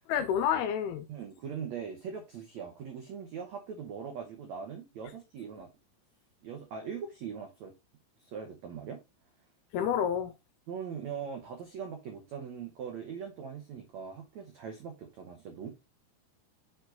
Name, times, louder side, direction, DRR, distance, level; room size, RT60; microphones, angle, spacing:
voice 1, 0.1-1.1 9.7-10.3, left 8 dB, 80° left, 2.4 m, -29 dB
voice 2, 1.1-5.7 6.4-7.7 8.2-9.0 10.7-15.7, right 7 dB, 90° right, 1.5 m, -41 dB
6.3 x 4.8 x 3.9 m
omnidirectional pair, 4.8 m